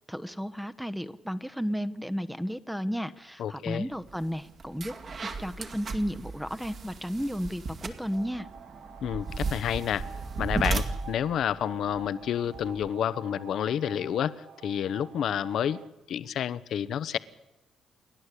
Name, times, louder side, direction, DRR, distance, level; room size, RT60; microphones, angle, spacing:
voice 1, 0.1-4.9 5.4-8.5, equal, ahead, 11 dB, 0.9 m, -33 dB
voice 2, 3.4-3.9 9.0-10.1 10.4-14.4 14.6-15.8 16.1-17.2, left 9 dB, 70° left, 15 dB, 0.9 m, -29 dB
sound 1, 4.0-8.2 9.1-11.4, right 5 dB, 60° right, 6.1 m, -56 dB
sound 2, 4.1-4.2 4.6-12.9, right 3 dB, 45° right, 2.3 m, -35 dB
sound 3, 8.1-15.9, right 6 dB, 85° right, 1.5 m, -48 dB
28.0 x 11.5 x 8.3 m, 1.0 s
cardioid pair, 90°, 0 cm